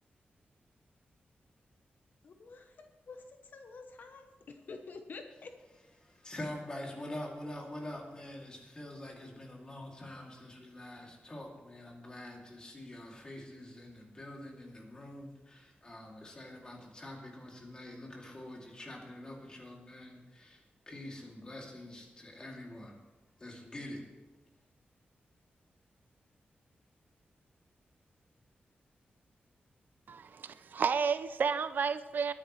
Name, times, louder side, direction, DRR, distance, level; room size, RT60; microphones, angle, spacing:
voice 1, 2.2-5.5, left 4 dB, 60° left, 6 dB, 0.9 m, -49 dB
voice 2, 6.0-20.6 20.9-23.0 23.4-24.0, left 1 dB, 25° left, -1 dB, 2.6 m, -45 dB
voice 3, 30.1-32.3, right 6 dB, 60° right, 13 dB, 0.4 m, -31 dB
21.0 x 10.0 x 3.2 m, 1.2 s
wide cardioid pair, 155°, 4 cm